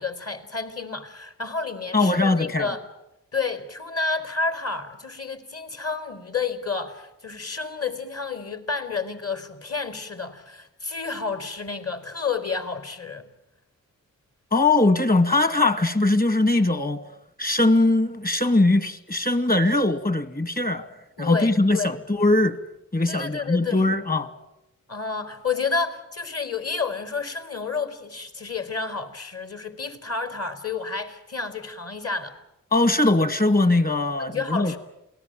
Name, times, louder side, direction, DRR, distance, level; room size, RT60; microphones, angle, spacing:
voice 1, 0.0-2.8 3.3-13.2 21.2-22.0 23.1-23.8 24.9-32.4 34.2-34.8, left 4 dB, 45° left, 4.3 m, -30 dB
voice 2, 1.9-2.7 14.5-17.0 17.4-20.9 21.2-22.6 22.9-24.3 32.7-34.8, left 2 dB, 25° left, 2.3 m, -21 dB
28.5 x 19.5 x 9.1 m
cardioid pair, 75°, 33 cm